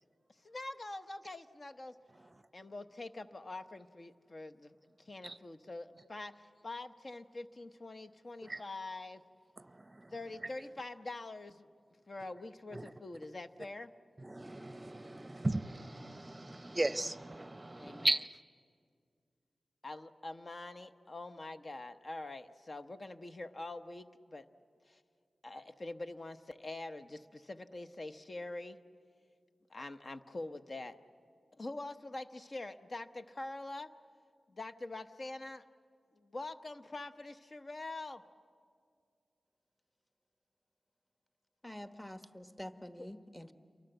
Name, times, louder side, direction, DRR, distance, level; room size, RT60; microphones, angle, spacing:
voice 1, 0.4-1.9 2.5-9.2 10.1-11.7 12.1-13.9 17.8-18.1 19.8-24.5 24.9-25.0 25.4-28.8 29.7-31.0 31.6-33.9 34.5-35.6 36.2-38.2 43.0-43.1, left 2 dB, 50° left, 8 dB, 1.0 m, -45 dB
voice 2, 9.7-10.1 12.7-12.8 14.2-18.4, right 2 dB, 25° right, 14 dB, 0.7 m, -36 dB
voice 3, 41.6-43.5, left 1 dB, 10° left, 9 dB, 1.2 m, -47 dB
28.5 x 23.0 x 8.0 m, 2.3 s
cardioid pair, 50°, 0 cm